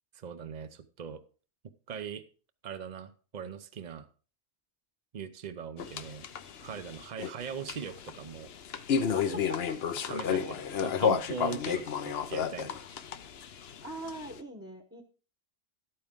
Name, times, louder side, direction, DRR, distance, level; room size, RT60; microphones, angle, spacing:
voice 1, 0.1-1.2 1.9-2.2 2.6-4.1 5.1-6.3 6.6-8.5 9.3-9.4 10.1-12.8, right 7 dB, 45° right, 12 dB, 0.8 m, -40 dB
sound 1, 5.8-14.4, left 7 dB, 70° left, 1.0 m, -32 dB
voice 2, 9.1-10.1 13.8-15.0, right 1 dB, 15° right, 3 dB, 1.0 m, -43 dB
12.0 x 8.8 x 3.6 m, 0.39 s
omnidirectional pair, 1.1 m